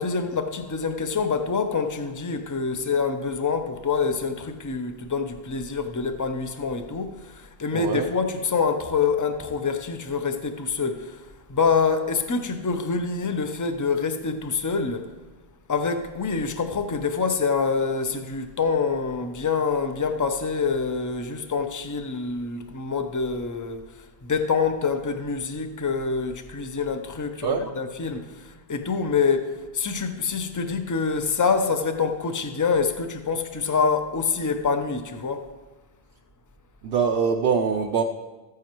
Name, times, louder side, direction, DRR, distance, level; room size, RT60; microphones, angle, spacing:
voice 1, 0.0-15.0 15.7-23.8 24.2-35.4, left 5 dB, 25° left, 0.5 m, -26 dB
voice 2, 7.7-8.1 27.4-27.7 36.8-38.0, right 6 dB, 70° right, 0.7 m, -23 dB
14.0 x 9.5 x 3.0 m
omnidirectional pair, 1.1 m